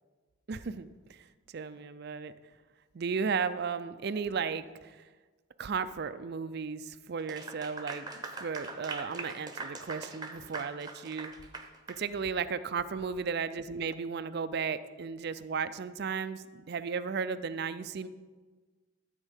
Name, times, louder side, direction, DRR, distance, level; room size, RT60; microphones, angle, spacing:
voice 1, 0.5-2.3 2.9-5.1 5.6-11.3 11.9-18.1, right 5 dB, 55° right, 13 dB, 0.4 m, -35 dB
Clapping / Applause, 7.2-12.0, right 3 dB, 20° right, 0.9 m, -42 dB
13.5 x 4.6 x 8.1 m, 1.4 s
head